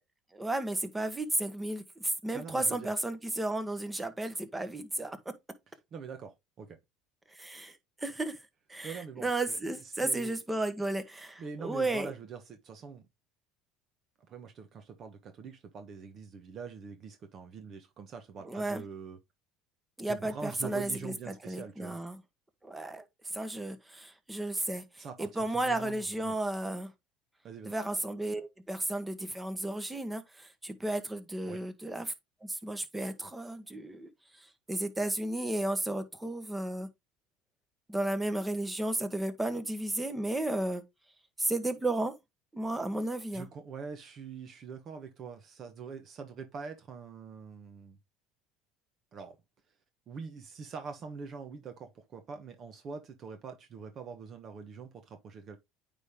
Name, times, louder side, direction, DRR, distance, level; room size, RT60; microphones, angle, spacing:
voice 1, 0.3-5.2 7.3-8.4 8.7-12.1 18.4-18.8 20.0-22.2 22.6-23.0 23.3-26.9 27.7-32.1 32.4-34.1 34.4-36.9 37.9-40.8 41.4-42.2 42.5-43.5, right 2 dB, 10° right, 1.2 m, -33 dB
voice 2, 2.3-2.9 5.9-6.8 8.8-9.6 10.0-10.4 11.4-13.1 14.3-19.2 20.1-22.0 25.0-26.4 27.4-27.7 31.4-31.6 43.3-48.0 49.1-49.4 50.1-55.6, right 5 dB, 40° right, 1.2 m, -44 dB
9.1 x 3.6 x 3.6 m
supercardioid pair, 120°, 0 cm